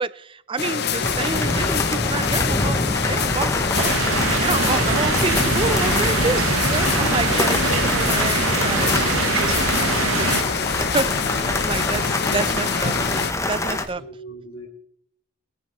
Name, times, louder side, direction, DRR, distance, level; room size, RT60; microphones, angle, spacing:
voice 1, 0.0-8.9 9.3-11.1 11.6-12.9 13.5-14.0, right 3 dB, 25° right, 16 dB, 0.5 m, -29 dB
sound 1, 0.6-13.3, left 6 dB, 50° left, 0.7 m, -25 dB
sound 2, 1.0-13.9, left 2 dB, 15° left, 0.9 m, -25 dB
sound 3, 3.7-10.4, right 4 dB, 85° right, 1.2 m, -24 dB
voice 2, 11.9-12.3 13.6-14.7, equal, 85° left, 0 dB, 2.8 m, -39 dB
21.5 x 10.0 x 3.1 m, 0.68 s
head